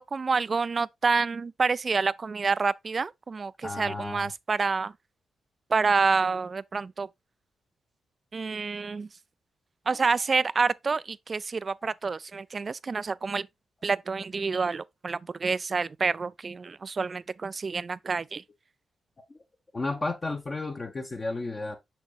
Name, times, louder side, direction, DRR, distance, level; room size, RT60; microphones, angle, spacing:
voice 1, 0.0-4.9 5.7-7.1 8.3-9.1 9.9-13.5 13.8-18.4, right 4 dB, 45° right, 0.3 m, -28 dB
voice 2, 3.6-4.3 9.9-10.1 11.8-11.9 19.3-19.4 19.7-21.8, left 2 dB, 40° left, 1.0 m, -33 dB
6.2 x 6.2 x 2.5 m
hypercardioid pair, 40°, 0 cm